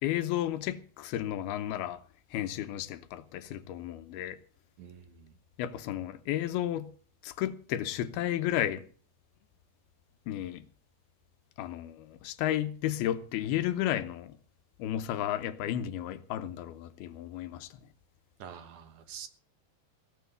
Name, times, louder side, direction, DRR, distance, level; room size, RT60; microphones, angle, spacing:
voice 1, 0.0-2.0 2.3-4.4 5.6-6.9 7.2-8.8 10.3-10.7 11.6-14.4 14.8-17.8, left 12 dB, 85° left, 2.8 m, -33 dB
voice 2, 4.8-5.3 18.4-19.3, right 8 dB, 65° right, 2.3 m, -46 dB
17.0 x 7.5 x 7.9 m
omnidirectional pair, 4.4 m